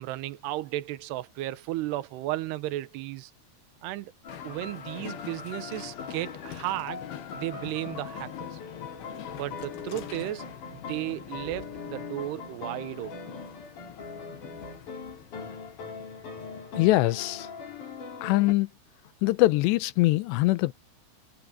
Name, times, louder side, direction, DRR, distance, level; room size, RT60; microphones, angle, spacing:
voice 1, 0.0-3.3 3.8-4.1 4.4-7.0 7.3-8.6 9.4-10.5 10.7-13.2, right 15 dB, 75° right, 3.0 m, -34 dB
sound 1, 4.2-18.5, left 5 dB, 50° left, 5.3 m, -41 dB
Train, 4.3-16.8, left 11 dB, 70° left, 3.6 m, -45 dB
voice 2, 16.8-17.5 18.2-18.7 19.2-20.7, left 19 dB, 90° left, 2.9 m, -23 dB
omnidirectional pair, 4.9 m